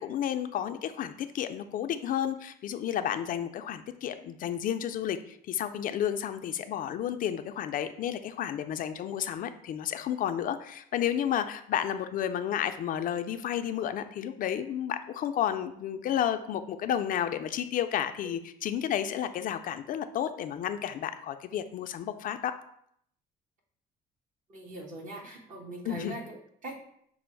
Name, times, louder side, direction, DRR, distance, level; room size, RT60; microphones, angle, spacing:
voice 1, 0.0-22.5 25.8-26.2, left 10 dB, 55° left, 9 dB, 0.4 m, -31 dB
voice 2, 24.5-26.8, right 1 dB, 50° right, 0 dB, 1.3 m, -41 dB
5.9 x 2.0 x 4.4 m, 0.69 s
cardioid pair, 110°, 17 cm